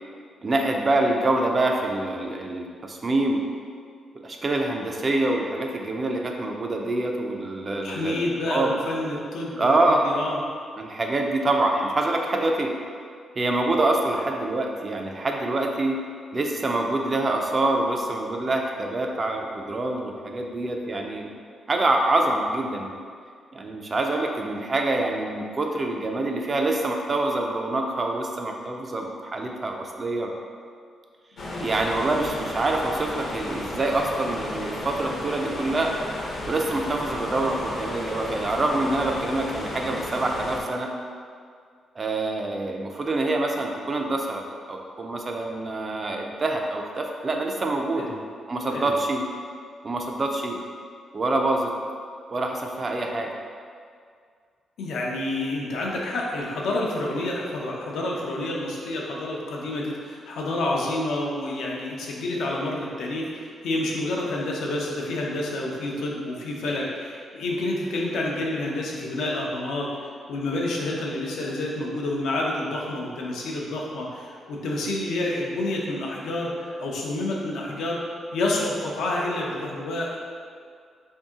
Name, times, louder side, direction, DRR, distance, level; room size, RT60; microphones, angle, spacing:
voice 1, 0.4-3.4 4.2-8.7 9.6-10.0 10.8-12.7 13.4-16.0 16.3-21.3 21.7-23.0 23.5-30.3 31.6-35.9 36.5-40.9 42.0-44.4 44.7-48.1 48.5-49.2 49.8-50.6 51.1-51.7 52.3-53.3, right 2 dB, 30° right, 2 dB, 0.3 m, -26 dB
voice 2, 7.8-10.4 31.4-31.7 48.0-48.1 48.7-48.9 54.8-69.9 70.3-78.0 78.3-80.2, left 2 dB, 85° left, -2 dB, 0.6 m, -29 dB
sound 1, 31.4-40.6, left 1 dB, 45° left, 0.5 m, -33 dB
3.6 x 2.7 x 3.5 m, 2.1 s
cardioid pair, 145°, 0 cm